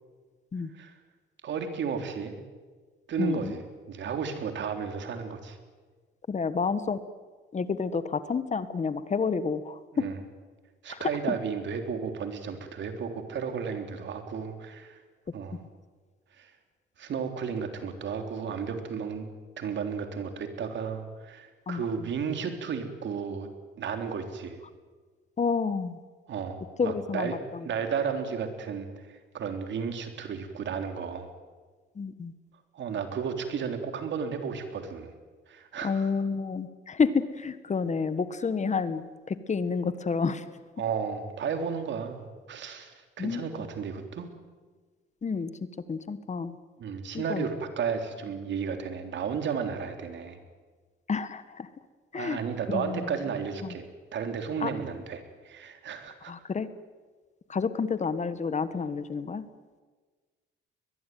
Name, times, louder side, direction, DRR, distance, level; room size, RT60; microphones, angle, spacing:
voice 1, 1.4-2.3 3.1-5.6 9.9-10.2 10.8-15.0 15.3-15.6 16.4-16.5 17.0-19.3 19.6-23.5 23.8-24.6 26.3-31.3 32.7-35.1 35.5-36.1 40.8-44.3 46.8-50.4 52.1-53.9 54.1-56.3, right 6 dB, 65° right, 6 dB, 3.6 m, -33 dB
voice 2, 3.2-3.5 6.3-7.0 7.5-10.1 10.9-11.0 21.7-21.9 25.4-26.0 26.8-27.6 31.9-32.3 35.8-40.4 43.2-43.5 45.2-45.5 45.9-46.5 47.1-47.5 51.1-51.7 52.1-52.4 52.7-53.1 53.6-53.7 54.6-54.7 56.3-56.7 57.5-59.4, left 5 dB, 35° left, 13 dB, 1.5 m, -29 dB
21.5 x 21.0 x 9.4 m, 1.4 s
cardioid pair, 90°, 20 cm